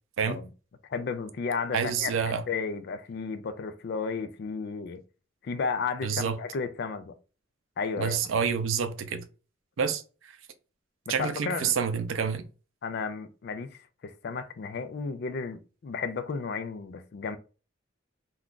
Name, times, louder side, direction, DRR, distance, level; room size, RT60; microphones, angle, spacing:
voice 1, 0.9-5.0 5.4-7.2 7.8-8.2 11.1-11.8 12.8-17.4, left 5 dB, 55° left, 0.4 m, -33 dB
voice 2, 1.7-2.4 6.0-6.4 8.0-9.2 9.8-10.0 11.1-12.4, right 6 dB, 90° right, 0.4 m, -28 dB
2.4 x 2.2 x 3.7 m
head